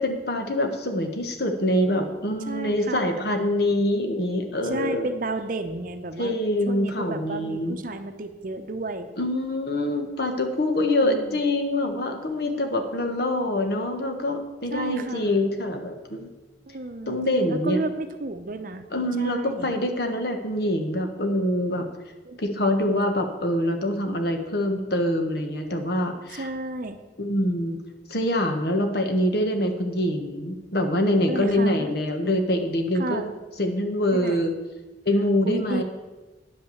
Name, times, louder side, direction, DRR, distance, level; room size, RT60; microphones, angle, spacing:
voice 1, 0.0-5.1 6.2-7.8 9.2-16.3 17.1-17.8 18.9-21.9 22.4-26.5 27.2-27.8 28.1-33.2 33.6-34.5 35.0-35.8, left 1 dB, 60° left, 5 dB, 1.3 m, -25 dB
voice 2, 2.5-3.2 4.6-6.4 6.6-9.1 11.0-11.4 14.7-15.4 16.7-17.2 17.5-18.9 19.1-19.7 22.2-22.6 26.3-27.0 31.3-31.9 32.9-33.3 34.1-34.5 35.4-35.8, right 2 dB, 50° right, 8 dB, 0.7 m, -32 dB
9.8 x 5.5 x 7.1 m, 1.2 s
head